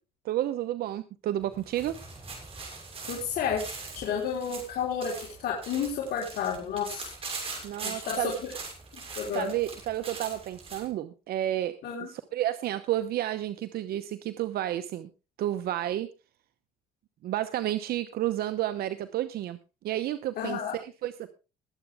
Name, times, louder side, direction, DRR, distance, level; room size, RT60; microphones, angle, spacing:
voice 1, 0.2-2.0 7.6-8.3 9.3-11.8 12.1-15.1 15.4-16.1 17.2-19.6 19.8-21.3, right 13 dB, 65° right, 10 dB, 0.9 m, -31 dB
sound 1, 1.4-10.9, right 4 dB, 35° right, 6.5 m, -42 dB
voice 2, 3.1-7.1 7.8-8.3 9.2-9.6 11.8-12.1 20.4-20.7, left 7 dB, 70° left, -2 dB, 4.2 m, -31 dB
21.0 x 8.2 x 3.5 m, 0.30 s
cardioid pair, 110°, 17 cm